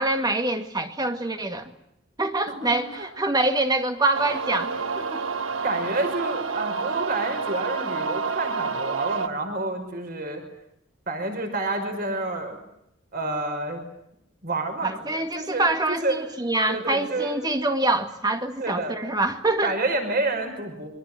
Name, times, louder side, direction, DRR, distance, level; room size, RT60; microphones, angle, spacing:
voice 1, 0.0-1.7 2.2-5.2 14.8-19.8, right 2 dB, 20° right, 2.0 m, -25 dB
voice 2, 2.5-3.1 5.6-10.4 11.1-12.6 13.1-13.8 14.4-16.2 16.7-17.4 18.6-19.0 19.6-20.9, right 2 dB, 45° right, 5.8 m, -29 dB
sound 1, 4.1-9.3, right 5 dB, 75° right, 1.3 m, -29 dB
28.0 x 24.5 x 7.6 m
head